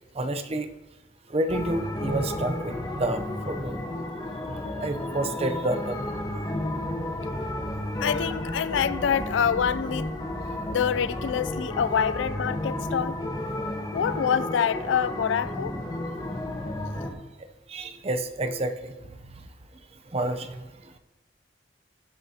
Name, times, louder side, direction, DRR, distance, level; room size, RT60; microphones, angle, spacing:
voice 1, 0.1-0.7 1.3-3.7 4.4-6.1 6.3-6.4 17.7-19.1 19.4-19.5 20.1-21.0, right 1 dB, 30° right, 0.6 m, -30 dB
sound 1, 1.5-17.1, left 1 dB, 20° left, 1.2 m, -32 dB
voice 2, 8.0-10.1 10.7-13.2 13.9-15.8, left 8 dB, 75° left, 0.3 m, -26 dB
19.0 x 8.1 x 2.8 m
head